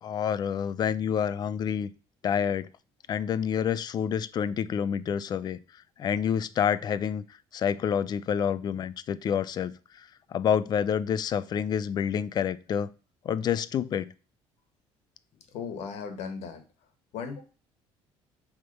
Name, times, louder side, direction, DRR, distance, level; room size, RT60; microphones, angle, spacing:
voice 1, 0.0-1.9 2.2-2.7 3.1-5.6 6.0-7.2 7.5-12.9 13.2-14.1, left 8 dB, 40° left, 17 dB, 0.4 m, -28 dB
voice 2, 15.5-16.6 17.1-17.4, left 6 dB, 75° left, 7 dB, 1.5 m, -36 dB
6.6 x 3.6 x 5.4 m, 0.35 s
cardioid pair, 140°, 11 cm